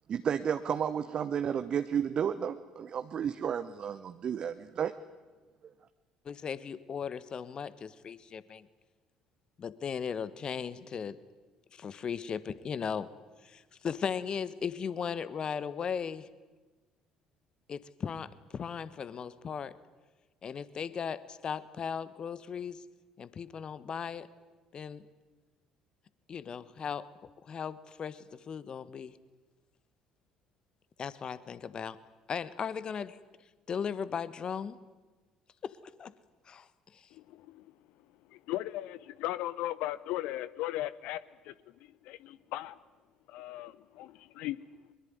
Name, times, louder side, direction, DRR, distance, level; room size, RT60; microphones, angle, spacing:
voice 1, 0.1-4.9, right 8 dB, 45° right, 10 dB, 1.0 m, -32 dB
voice 2, 6.2-8.7 9.6-11.2 11.7-13.1 13.4-16.3 17.7-19.7 20.4-22.8 23.2-24.3 24.7-25.1 26.3-27.1 27.4-29.1 31.0-32.0 32.3-33.2 33.7-34.8 35.6-36.1 36.5-37.1, left 7 dB, 40° left, 16 dB, 1.4 m, -37 dB
voice 3, 38.3-41.5 42.0-42.8 43.3-44.6, left 15 dB, 60° left, 17 dB, 0.9 m, -37 dB
23.0 x 22.0 x 9.5 m, 1.3 s
figure-of-eight pair, 55°, 2 cm